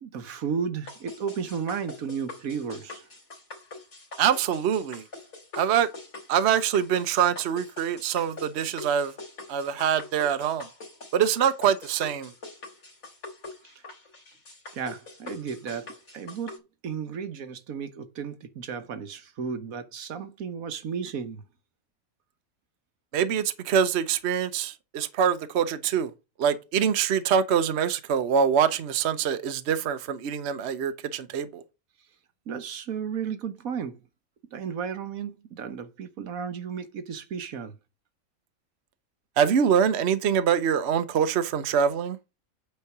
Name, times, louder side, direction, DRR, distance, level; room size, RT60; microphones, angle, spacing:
voice 1, 0.0-3.0 14.7-16.5 16.8-21.4 32.5-34.0 34.5-37.7, right 6 dB, 75° right, 1.4 m, -34 dB
sound 1, 0.9-16.6, left 3 dB, 75° left, 3.1 m, -44 dB
voice 2, 4.2-5.0 5.6-5.9 6.3-9.1 9.5-10.7 11.1-12.3 23.1-26.1 26.4-31.6 39.4-42.2, right 8 dB, 55° right, 1.0 m, -24 dB
8.5 x 4.6 x 5.9 m
omnidirectional pair, 1.5 m